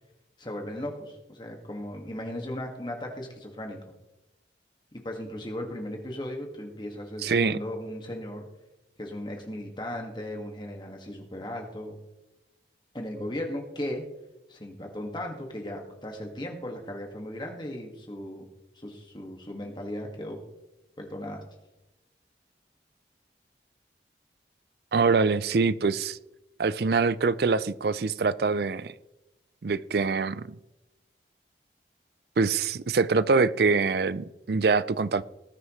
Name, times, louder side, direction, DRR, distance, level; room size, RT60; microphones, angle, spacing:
voice 1, 0.4-3.8 5.0-8.5 9.0-12.0 12.9-14.0 14.5-18.5 18.8-20.4 21.0-21.4, left 1 dB, 25° left, 2 dB, 1.9 m, -36 dB
voice 2, 7.2-7.6 24.9-26.2 26.6-28.9 29.6-30.6 32.4-35.2, right 4 dB, 65° right, 16 dB, 0.4 m, -24 dB
19.5 x 9.5 x 3.2 m, 0.97 s
head